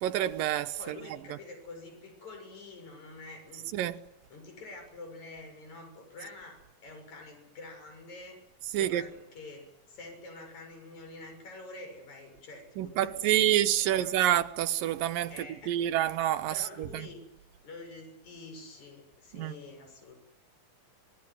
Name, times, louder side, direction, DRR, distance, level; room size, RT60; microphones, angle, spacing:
voice 1, 0.0-1.0 3.7-4.0 8.7-9.0 12.8-15.3 15.7-17.1 19.3-19.5, right 12 dB, 75° right, 2.7 m, -27 dB
voice 2, 0.8-3.9 4.3-8.4 8.8-14.2 15.3-16.1 16.5-17.2 17.6-20.2, left 2 dB, 50° left, 8.0 m, -47 dB
26.0 x 21.0 x 9.6 m
omnidirectional pair, 4.2 m